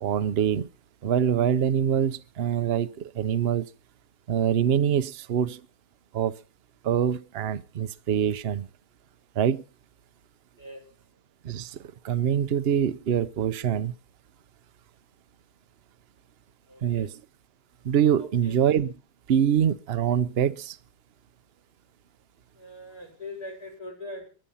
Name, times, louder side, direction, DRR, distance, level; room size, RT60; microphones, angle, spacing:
voice 1, 0.0-0.7 1.0-3.7 4.3-5.6 6.1-6.4 6.8-8.7 9.3-9.6 11.4-13.9 16.8-17.2 17.8-18.9 19.3-20.8, right 9 dB, 45° right, 0.9 m, -24 dB
voice 2, 10.6-10.9 16.7-17.1 18.2-18.5 22.5-24.3, left 1 dB, 65° left, 6.0 m, -41 dB
23.0 x 8.9 x 5.6 m
omnidirectional pair, 1.8 m